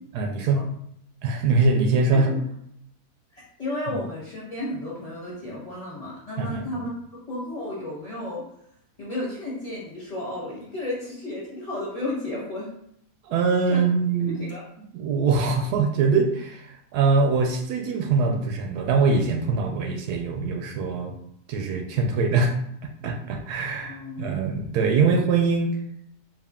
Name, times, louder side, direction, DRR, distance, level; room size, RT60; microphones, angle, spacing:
voice 1, 0.1-0.6 1.2-2.3 3.9-4.0 6.4-6.6 13.2-14.4 14.9-21.1 21.5-22.5 23.0-25.7, right 4 dB, 75° right, 3 dB, 1.1 m, -23 dB
voice 2, 3.6-6.9 7.3-8.4 9.0-12.7 13.7-13.8 14.4-14.6 23.9-24.4, left 1 dB, 25° left, -7 dB, 1.2 m, -33 dB
3.6 x 2.5 x 3.5 m, 0.71 s
omnidirectional pair, 1.7 m